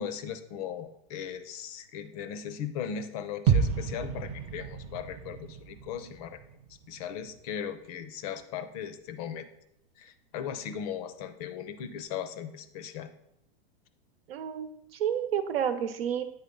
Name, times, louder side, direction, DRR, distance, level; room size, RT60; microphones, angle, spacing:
voice 1, 0.0-6.4 6.9-9.5 10.0-13.1, left 8 dB, 40° left, 11 dB, 0.6 m, -38 dB
sound 1, 3.5-7.4 7.7-7.8, right 6 dB, 20° right, 0.4 m, -31 dB
voice 2, 14.3-16.2, right 9 dB, 75° right, 10 dB, 0.9 m, -30 dB
8.6 x 4.0 x 5.3 m, 0.76 s
supercardioid pair, 150°, 29 cm